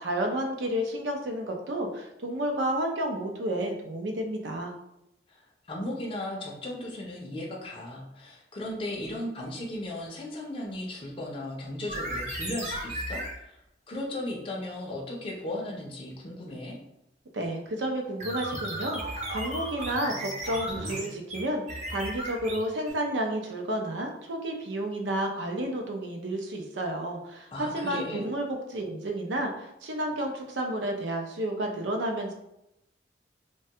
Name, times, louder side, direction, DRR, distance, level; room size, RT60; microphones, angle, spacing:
voice 1, 0.0-4.7 17.3-32.3, right 1 dB, 80° right, 3 dB, 0.5 m, -31 dB
voice 2, 5.3-13.6 13.9-16.8 27.5-28.3, left 1 dB, 30° left, -2 dB, 0.4 m, -36 dB
sound 1, 11.9-13.4 18.2-22.9, right 1 dB, 40° right, 0.7 m, -35 dB
3.2 x 2.2 x 2.7 m, 0.85 s
head